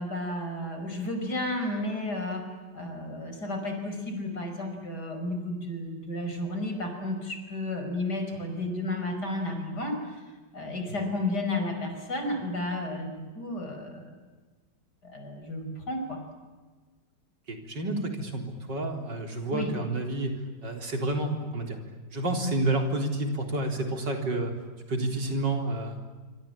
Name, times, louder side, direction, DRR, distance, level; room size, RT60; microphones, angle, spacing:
voice 1, 0.0-10.2 10.5-14.2 15.0-16.2 19.5-19.7, left 1 dB, 65° left, 5 dB, 5.8 m, -32 dB
voice 2, 17.5-20.3 20.6-21.8 22.1-24.5 24.9-26.0, right 2 dB, 75° right, 4 dB, 4.5 m, -29 dB
26.0 x 26.0 x 8.8 m, 1.4 s
omnidirectional pair, 1.9 m